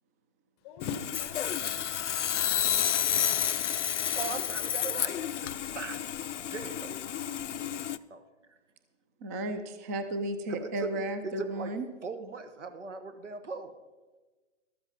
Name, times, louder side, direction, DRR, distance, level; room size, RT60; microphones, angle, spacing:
voice 1, 0.6-2.5 3.0-3.5, left 6 dB, 25° left, 0.7 m, -44 dB
Sawing, 0.8-8.0, left 10 dB, 85° left, 0.6 m, -30 dB
voice 2, 4.1-5.1 5.4-6.0 6.5-7.0 8.1-8.2 8.5-8.6 10.5-10.7 10.9-11.7 12.0-13.7, right 4 dB, 90° right, 1.5 m, -39 dB
voice 3, 9.2-11.9, right 1 dB, 15° right, 0.4 m, -34 dB
13.0 x 13.0 x 4.0 m
hypercardioid pair, 140°, 35 cm